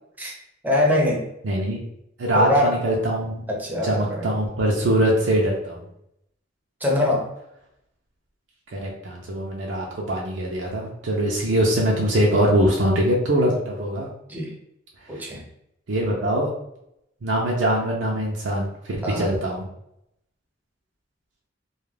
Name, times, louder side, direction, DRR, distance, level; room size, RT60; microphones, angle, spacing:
voice 1, 0.6-1.2 2.3-2.8 3.5-4.3 6.8-7.3 14.3-14.5 15.1-15.4 19.0-19.3, left 1 dB, 10° right, -2 dB, 0.5 m, -23 dB
voice 2, 1.4-1.8 2.2-3.4 3.8-5.8 8.7-14.1 15.2-15.3 15.9-16.5 17.2-19.7, right 1 dB, 80° right, -2 dB, 0.5 m, -23 dB
2.3 x 2.1 x 3.2 m, 0.79 s
head